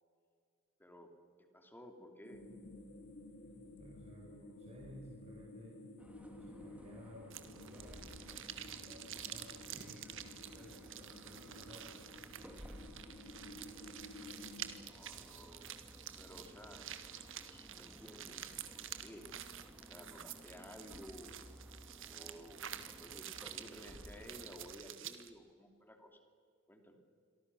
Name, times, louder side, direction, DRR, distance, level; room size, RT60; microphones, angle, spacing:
voice 1, 1.4-2.4 14.9-15.7 16.2-16.9 17.4-19.2 19.8-21.4 22.1-26.2 26.7-27.0, equal, 10° left, 5 dB, 2.6 m, -55 dB
sound 1, 2.2-14.8, left 2 dB, 60° left, 3.7 m, -54 dB
voice 2, 3.8-5.9 6.2-10.0 10.4-12.0, equal, 30° right, -2 dB, 5.6 m, -56 dB
sound 2, 6.0-24.8, equal, 5° right, 2.6 m, -57 dB
sound 3, 7.3-25.3, right 10 dB, 65° right, 1.8 m, -49 dB
29.0 x 23.5 x 6.8 m, 2.2 s
head